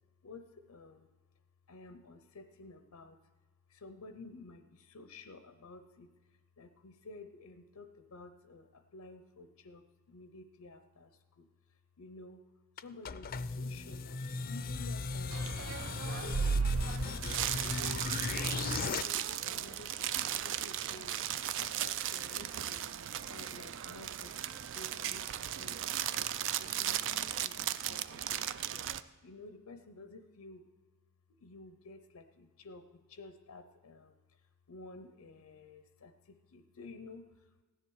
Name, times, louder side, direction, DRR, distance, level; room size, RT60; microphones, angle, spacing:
voice 1, 0.2-1.1 1.7-3.2 3.7-6.1 6.6-11.1 11.4-11.5 12.0-12.4 12.8-15.7 16.2-17.4 17.6-18.3 18.7-21.1 21.6-22.8 23.3-24.3 24.7-25.8 26.1-28.9 29.2-30.6 31.4-32.8 33.1-34.1 34.7-37.3, left 3 dB, 90° left, 9 dB, 0.7 m, -52 dB
sound 1, 12.8-19.0, left 4 dB, 40° left, 0.4 m, -37 dB
sound 2, 15.3-29.0, right 9 dB, 60° right, 0.4 m, -36 dB
16.0 x 10.0 x 4.7 m, 1.3 s
head